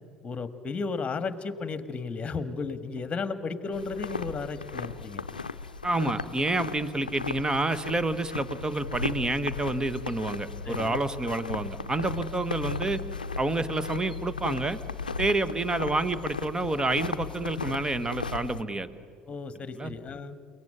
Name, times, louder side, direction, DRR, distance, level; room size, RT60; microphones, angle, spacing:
voice 1, 0.2-5.2 10.6-11.0 19.3-20.4, left 4 dB, 25° left, 11 dB, 1.7 m, -34 dB
sound 1, 3.7-18.6, left 4 dB, 80° left, 0.6 m, -36 dB
voice 2, 5.8-13.0 13.4-14.8 15.2-18.9 19.7-19.9, right 2 dB, 15° right, 14 dB, 1.4 m, -28 dB
30.0 x 18.0 x 8.9 m, 2.2 s
figure-of-eight pair, 65°, 5 cm